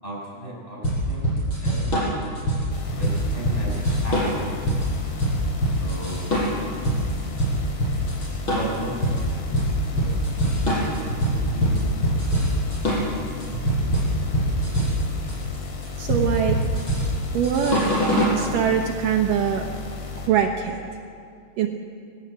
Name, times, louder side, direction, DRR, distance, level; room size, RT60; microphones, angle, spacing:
voice 1, 0.0-1.3 1.6-2.1 2.9-4.6 5.8-6.3 8.5-9.1 9.9-10.1 11.5-12.0, right 1 dB, 5° left, -5 dB, 7.6 m, -35 dB
sound 1, 0.8-18.4, right 1 dB, 25° left, 7.5 m, -23 dB
sound 2, 2.7-20.3, left 4 dB, 75° left, 4.9 m, -34 dB
voice 2, 16.0-16.6 17.3-17.9 18.3-19.7 20.2-20.8 21.6-21.7, right 8 dB, 80° right, 2 dB, 1.9 m, -23 dB
20.5 x 18.5 x 8.5 m, 2.3 s
omnidirectional pair, 5.6 m